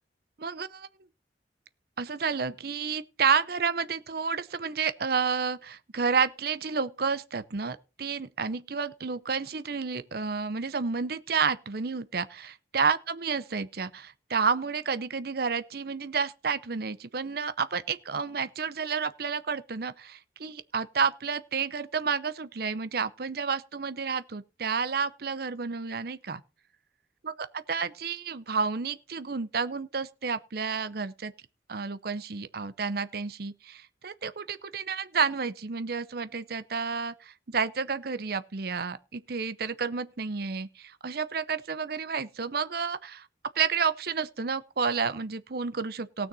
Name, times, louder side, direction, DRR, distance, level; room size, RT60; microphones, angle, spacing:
voice 1, 0.4-0.9 2.0-26.4 27.2-27.3 27.7-31.3 31.7-43.3 43.6-46.3, right 5 dB, 55° right, 0.7 m, -30 dB
18.0 x 6.4 x 4.2 m
head